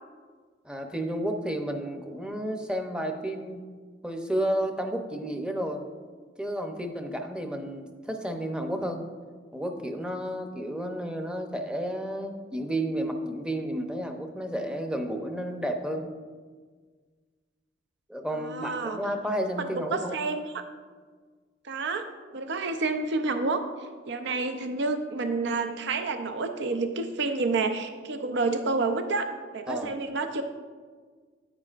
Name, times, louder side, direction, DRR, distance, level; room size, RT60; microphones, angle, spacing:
voice 1, 0.6-3.6 4.0-5.8 6.4-9.0 9.5-16.1 18.1-20.2 29.7-30.0, right 1 dB, 5° right, 4 dB, 0.7 m, -31 dB
voice 2, 18.4-19.0 19.6-20.6 21.6-22.1 22.3-23.7 24.1-30.4, right 3 dB, 65° right, 7 dB, 0.5 m, -29 dB
9.6 x 9.3 x 2.5 m, 1.5 s
head